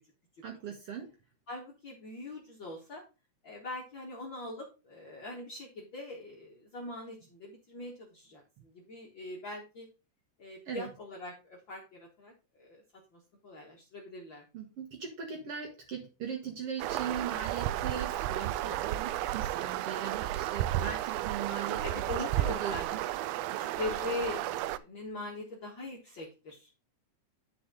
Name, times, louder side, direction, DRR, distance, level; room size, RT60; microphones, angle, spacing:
voice 1, 0.4-1.1 10.7-10.9 14.5-22.0 22.4-23.0, right 7 dB, 60° right, 3 dB, 2.0 m, -39 dB
voice 2, 1.5-3.0 3.4-9.9 10.4-12.3 12.6-12.8 13.1-14.4 21.8-23.0 23.6-26.7, left 2 dB, 45° left, -2 dB, 2.0 m, -41 dB
sound 1, 16.8-24.8, right 14 dB, 85° right, 1.4 m, -33 dB
10.0 x 5.1 x 3.8 m, 0.30 s
omnidirectional pair, 3.4 m